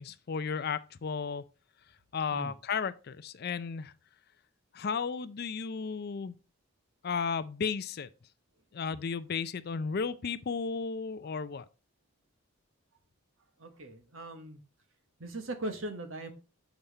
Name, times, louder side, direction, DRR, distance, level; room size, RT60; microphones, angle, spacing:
voice 1, 0.0-1.4 2.1-3.9 4.7-6.3 7.0-8.1 8.7-11.6, left 5 dB, 50° left, 0.4 m, -34 dB
voice 2, 13.6-14.6 15.2-16.3, right 1 dB, 70° right, 1.3 m, -39 dB
7.1 x 5.2 x 4.1 m
head